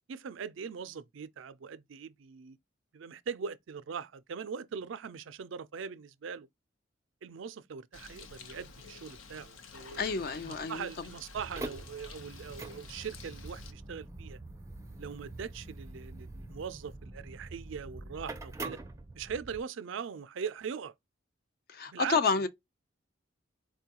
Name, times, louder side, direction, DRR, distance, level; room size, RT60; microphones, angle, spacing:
voice 1, 0.1-2.6 2.9-6.5 7.2-10.0 10.4-14.4 15.0-18.8 19.1-20.9 21.9-22.2, right 6 dB, 70° right, 0.4 m, -41 dB
Bird, 7.9-13.7, left 4 dB, 80° left, 0.7 m, -50 dB
voice 2, 10.0-10.9 21.7-22.5, left 4 dB, 50° left, 0.4 m, -29 dB
sound 1, 11.3-19.6, right 2 dB, 15° right, 0.4 m, -44 dB
4.4 x 2.2 x 2.8 m
head